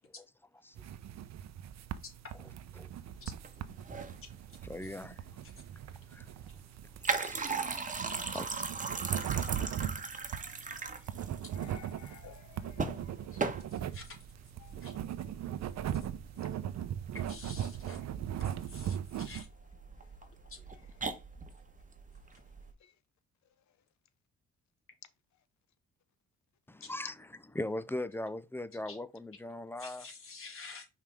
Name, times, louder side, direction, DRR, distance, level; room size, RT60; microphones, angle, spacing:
sound 1, 0.8-19.4, right 10 dB, 60° right, 0.7 m, -39 dB
sound 2, 3.2-22.7, right 4 dB, 25° right, 1.2 m, -40 dB
voice 1, 4.7-5.2 6.1-6.3 7.0-7.7 8.3-8.5 26.7-27.1 27.5-30.0, left 1 dB, 10° left, 0.5 m, -39 dB
voice 2, 9.1-9.8 10.4-10.9 11.5-13.4 14.6-14.7 22.8-22.9, left 10 dB, 65° left, 0.9 m, -56 dB
voice 3, 13.3-14.2 14.8-15.0 15.9-16.1 16.3-16.4 17.2-18.0 18.6-19.5 20.4-20.8 22.3-22.4 26.8-26.9 28.9-29.0 29.8-30.9, left 4 dB, 45° left, 2.6 m, -50 dB
5.6 x 3.5 x 4.8 m
cardioid pair, 90°, 30 cm